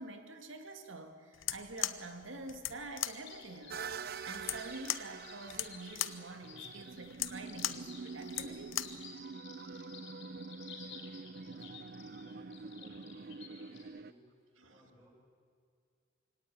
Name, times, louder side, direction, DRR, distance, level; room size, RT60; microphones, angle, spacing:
voice 1, 0.0-3.9 4.3-8.7 11.6-11.8 12.8-13.0 14.6-14.9, right 2 dB, 85° right, 6 dB, 2.3 m, -47 dB
sound 1, 1.3-9.1, left 13 dB, 85° left, 0.9 m, -39 dB
sound 2, 3.0-13.8, left 6 dB, 70° left, 4.9 m, -53 dB
sound 3, 3.7-14.1, right 5 dB, 50° right, 0.6 m, -46 dB
voice 2, 10.6-14.2 14.7-15.1, equal, 5° right, -10 dB, 6.0 m, -64 dB
24.0 x 18.0 x 9.3 m, 2.2 s
head